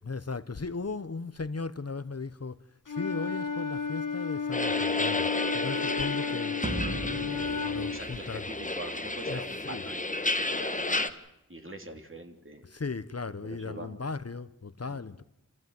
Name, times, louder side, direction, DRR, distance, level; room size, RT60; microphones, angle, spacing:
voice 1, 0.0-6.6 7.2-8.5 9.2-9.8 12.6-15.2, left 4 dB, 50° left, 0.9 m, -37 dB
Wind instrument woodwind instrument, 2.9-8.0, left 5 dB, 80° left, 1.4 m, -32 dB
sound 1, 4.5-11.1, left 2 dB, 25° left, 1.3 m, -32 dB
sound 2, 6.6-9.1, right 1 dB, 20° right, 2.5 m, -37 dB
voice 2, 7.6-11.1 11.5-12.7 13.4-14.0 14.9-15.0, right 1 dB, 40° right, 3.1 m, -43 dB
28.5 x 14.5 x 9.4 m
wide cardioid pair, 45°, 32 cm